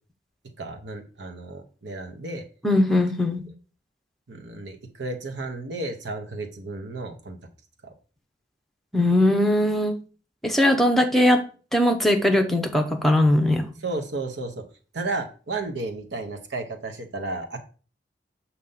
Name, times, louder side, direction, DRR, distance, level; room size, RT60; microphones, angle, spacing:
voice 1, 0.6-2.4 4.3-7.4 7.8-7.9 13.8-14.6 14.9-17.6, right 2 dB, 90° right, 5 dB, 0.9 m, -33 dB
voice 2, 2.6-3.5 8.9-10.0 10.4-11.4 11.7-13.7, left 1 dB, ahead, 4 dB, 0.8 m, -20 dB
6.5 x 2.9 x 5.5 m, 0.38 s
head